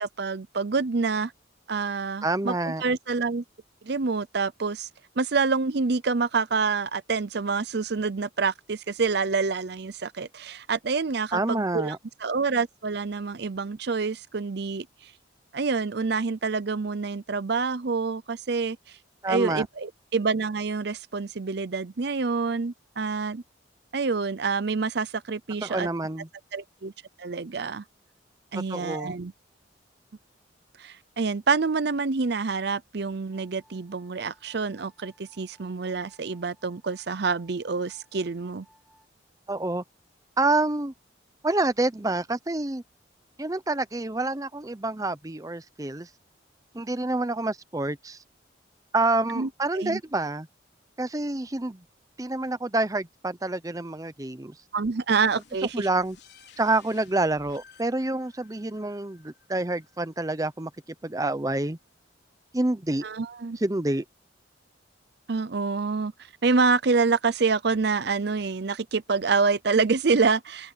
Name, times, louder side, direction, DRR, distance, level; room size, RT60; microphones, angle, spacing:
voice 1, 0.0-1.3 1.7-3.4 3.8-4.9 5.2-15.1 15.5-18.8 19.3-23.4 23.9-25.9 26.5-26.9 27.2-27.8 28.5-29.3 30.8-38.7 49.3-49.5 49.7-50.0 54.7-55.9 63.0-63.6 65.3-66.1 66.4-70.7, right 4 dB, 55° right, 0.6 m, -27 dB
voice 2, 2.2-2.8 11.3-12.0 19.2-19.6 25.6-26.3 28.7-29.1 39.5-39.8 40.4-40.9 41.4-42.8 43.4-46.1 46.7-48.2 48.9-50.5 51.0-51.8 52.2-54.5 55.7-56.2 56.6-60.7 61.0-61.8 62.5-63.0 63.6-64.0, right 2 dB, 20° right, 0.7 m, -27 dB
sound 1, 33.3-39.1, equal, ahead, 5.3 m, -62 dB
sound 2, 55.1-60.6, left 6 dB, 60° left, 4.1 m, -56 dB
head